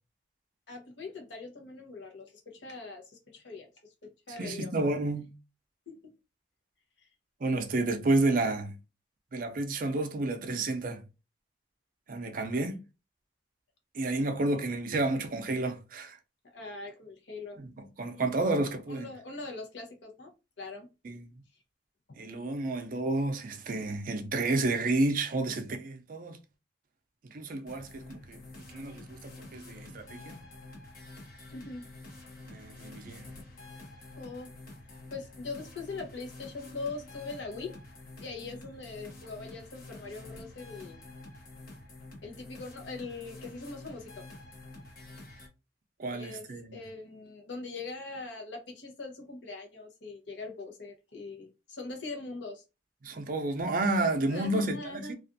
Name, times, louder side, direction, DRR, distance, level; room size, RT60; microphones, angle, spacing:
voice 1, 0.7-3.7 4.0-4.7 5.9-6.0 16.5-17.6 18.1-18.2 18.9-20.9 31.5-31.8 34.2-34.5 35.1-37.7 38.2-41.0 42.2-44.2 46.1-46.4 46.7-52.6 54.2-55.1, left 3 dB, 85° left, 0.8 m, -41 dB
voice 2, 4.4-5.3 7.4-8.8 9.3-11.0 12.1-12.8 13.9-16.2 17.6-17.7 18.0-19.1 21.0-21.3 22.2-26.4 27.3-28.4 28.7-30.4 32.5-33.3 46.0-46.8 53.0-55.1, right 2 dB, 50° right, 0.5 m, -30 dB
sound 1, 27.7-45.5, left 2 dB, 55° left, 0.9 m, -48 dB
2.4 x 2.4 x 2.6 m
head